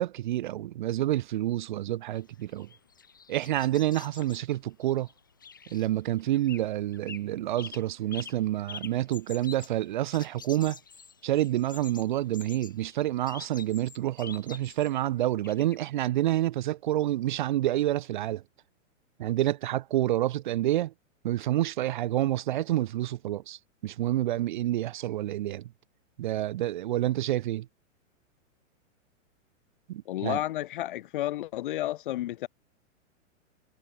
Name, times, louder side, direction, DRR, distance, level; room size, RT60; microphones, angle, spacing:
voice 1, 0.0-2.7 3.3-5.1 5.7-10.8 11.2-18.4 19.2-20.9 21.2-25.7 26.2-27.7 29.9-30.4, right 14 dB, 35° right, 0.7 m, -28 dB
sound 1, 2.1-6.7 6.9-7.3 7.6-15.0 15.4-15.8, left 6 dB, 15° left, 0.3 m, -47 dB
voice 2, 30.1-32.5, left 15 dB, 40° left, 0.9 m, -31 dB
supercardioid pair, 170°, 40 cm